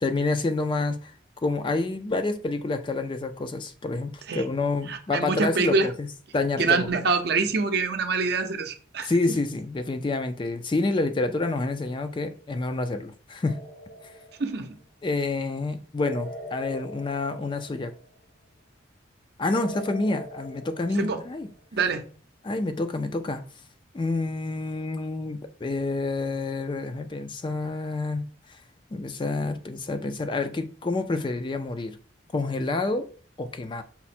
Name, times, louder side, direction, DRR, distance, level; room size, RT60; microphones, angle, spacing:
voice 1, 0.0-1.1 1.4-6.1 6.3-6.9 9.0-13.6 15.0-17.9 19.4-21.5 22.4-23.4 23.9-28.3 28.9-32.0 32.3-33.1 33.4-33.8, left 3 dB, 25° left, 0.3 m, -28 dB
voice 2, 4.9-5.9 6.6-9.1 14.4-14.8 21.0-21.2 21.7-22.0, right 4 dB, 55° right, 0.6 m, -25 dB
sound 1, 13.4-14.8 16.1-18.2 19.5-21.7, equal, 55° left, 0.7 m, -42 dB
5.7 x 2.1 x 4.2 m
head